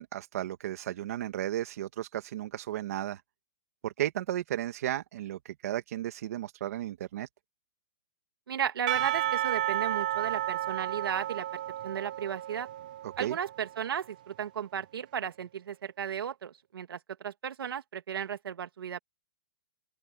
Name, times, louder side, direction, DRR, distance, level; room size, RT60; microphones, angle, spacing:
voice 1, 0.0-3.2 3.8-7.3 13.2-13.4, right 12 dB, 40° right, 1.6 m, -34 dB
voice 2, 8.5-11.5 11.8-12.7 13.2-19.0, right 8 dB, 75° right, 2.6 m, -35 dB
Percussion / Church bell, 8.9-13.9, right 13 dB, 20° right, 0.3 m, -32 dB
open air
hypercardioid pair, 180°, 12 cm